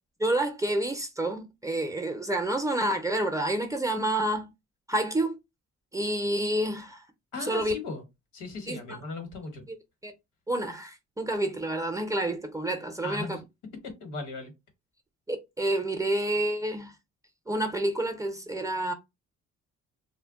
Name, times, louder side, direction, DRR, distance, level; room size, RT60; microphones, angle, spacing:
voice 1, 0.2-4.5 4.9-5.4 5.9-7.0 7.4-7.7 8.7-9.0 10.0-10.1 10.5-13.4 15.3-17.0 17.5-18.9, right 1 dB, 10° right, 0.5 m, -29 dB
voice 2, 7.3-8.0 8.3-9.7 13.0-13.4 13.8-14.5, left 3 dB, 80° left, 1.1 m, -37 dB
2.1 x 2.1 x 3.5 m
cardioid pair, 90°, 30 cm